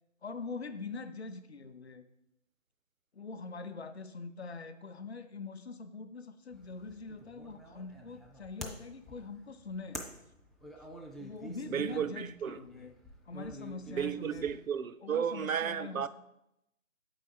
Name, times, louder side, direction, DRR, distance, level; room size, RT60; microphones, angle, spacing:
voice 1, 0.2-2.0 3.1-10.0 11.2-12.9 13.3-14.5 15.0-16.1, left 4 dB, 50° left, 0.6 m, -43 dB
sound 1, 6.5-14.8, equal, ahead, 0.3 m, -49 dB
voice 2, 11.6-12.6 13.9-16.1, right 8 dB, 80° right, 0.5 m, -33 dB
7.4 x 4.8 x 4.5 m
figure-of-eight pair, 155°, 41 cm